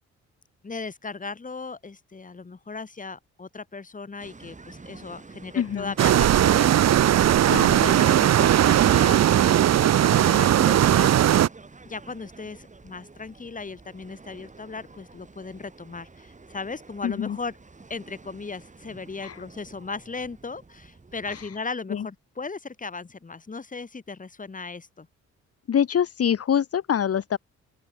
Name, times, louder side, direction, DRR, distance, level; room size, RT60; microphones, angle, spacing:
voice 1, 0.6-7.5 7.8-11.4 11.9-17.5 17.9-25.1, left 4 dB, 25° left, 3.9 m, -37 dB
sound 1, 4.2-21.5, right 3 dB, 25° right, 7.9 m, -49 dB
voice 2, 5.6-5.9 7.5-7.8 17.0-17.4 19.2-19.4 21.3-21.5 21.9-22.1 25.7-27.4, left 8 dB, 50° left, 2.2 m, -25 dB
sound 2, 6.0-11.5, right 11 dB, 60° right, 1.0 m, -18 dB
open air
cardioid pair, 90°, 30 cm